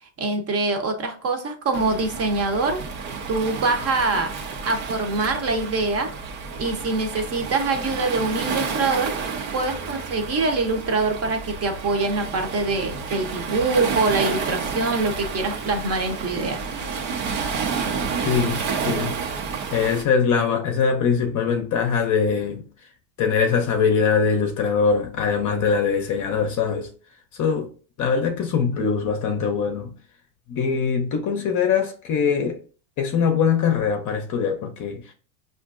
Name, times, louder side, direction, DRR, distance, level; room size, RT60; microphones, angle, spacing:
voice 1, 0.2-2.8 3.3-4.4 4.6-6.1 6.6-9.2 9.5-16.6, right 3 dB, 30° right, 0.8 m, -24 dB
Waves surf, 1.7-20.0, right 5 dB, 75° right, 0.9 m, -30 dB
voice 2, 18.2-19.2 19.7-22.9 23.2-26.9 27.3-27.7 28.0-29.9 30.5-32.6 33.0-35.1, left 6 dB, 40° left, 0.6 m, -22 dB
5.0 x 2.5 x 2.4 m
hypercardioid pair, 95°, 50 cm